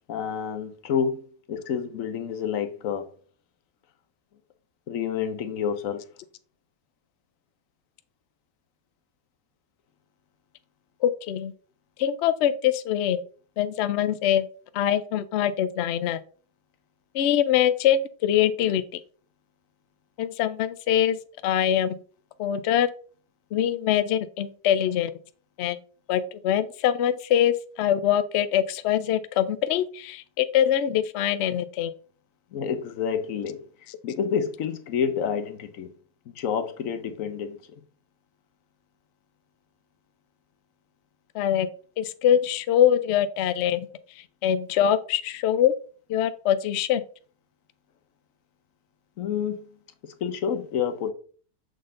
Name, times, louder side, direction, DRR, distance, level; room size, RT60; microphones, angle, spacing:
voice 1, 0.0-3.1 4.9-6.0 17.6-17.8 24.0-24.1 32.5-33.6 34.0-35.9 36.3-37.6 49.2-49.7 50.2-51.1, left 7 dB, 60° left, 1.0 m, -29 dB
voice 2, 11.0-11.5 12.0-13.2 13.6-14.5 14.7-16.2 17.1-19.0 20.2-22.0 22.4-22.9 23.5-25.1 25.6-25.8 26.1-31.9 41.3-41.7 42.0-43.9 44.4-45.7 46.1-47.0, left 10 dB, 85° left, 0.5 m, -23 dB
6.5 x 3.9 x 3.7 m
omnidirectional pair, 1.7 m